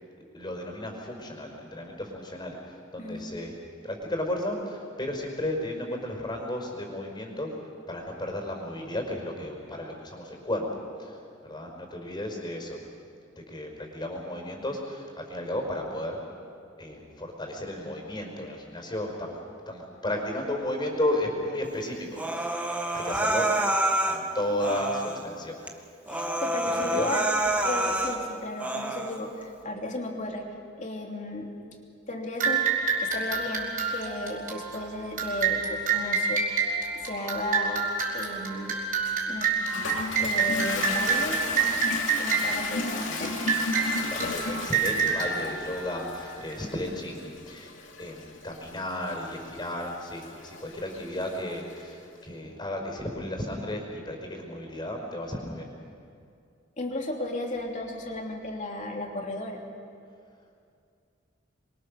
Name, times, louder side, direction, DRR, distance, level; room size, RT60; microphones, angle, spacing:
voice 1, 0.3-3.5 3.8-7.5 7.9-10.7 11.0-11.2 11.4-12.8 13.3-16.2 16.8-19.4 19.7-22.6 22.9-23.5 24.1-25.6 26.6-27.1 42.9-43.3 44.0-47.7 48.0-55.7, left 1 dB, 25° left, 2 dB, 5.2 m, -33 dB
voice 2, 3.0-3.3 26.1-27.2 27.6-30.4 30.8-31.5 32.1-32.7 33.0-37.8 38.1-38.8 39.2-39.5 40.2-41.4 42.2-43.3 56.8-59.6, left 2 dB, 40° left, 1 dB, 3.3 m, -34 dB
Human voice, 22.1-24.2 24.6-25.2 25.7-25.8 26.1-28.2 28.6-29.2, right 1 dB, 10° right, 1.7 m, -27 dB
sound 1, 32.4-46.5, right 5 dB, 45° right, 5.1 m, -28 dB
Toilet flush, 39.1-51.8, left 3 dB, 80° left, 2.7 m, -35 dB
26.5 x 23.5 x 6.8 m, 2.4 s
head